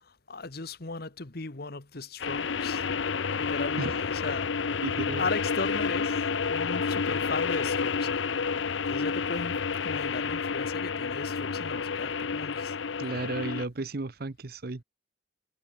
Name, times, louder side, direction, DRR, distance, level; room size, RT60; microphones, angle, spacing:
voice 1, 0.0-3.0 3.4-4.5 5.2-8.1 8.9-12.7, left 3 dB, 55° left, 1.3 m, -37 dB
sound 1, 2.2-13.6, left 5 dB, 80° left, 0.7 m, -30 dB
voice 2, 4.8-5.3 13.0-14.8, right 2 dB, 55° right, 0.8 m, -34 dB
head